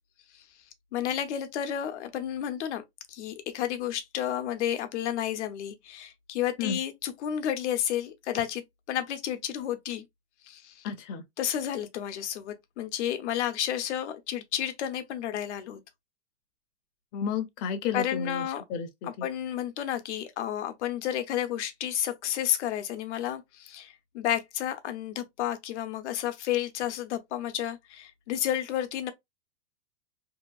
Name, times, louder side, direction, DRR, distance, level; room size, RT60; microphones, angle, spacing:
voice 1, 0.9-8.6 8.9-10.0 10.5-10.8 11.4-15.8 17.9-18.6 19.0-29.1, left 11 dB, 70° left, 0.8 m, -31 dB
voice 2, 10.8-11.2 17.1-19.3, left 6 dB, 35° left, 0.6 m, -32 dB
2.8 x 2.6 x 2.3 m
supercardioid pair, 145°, 36 cm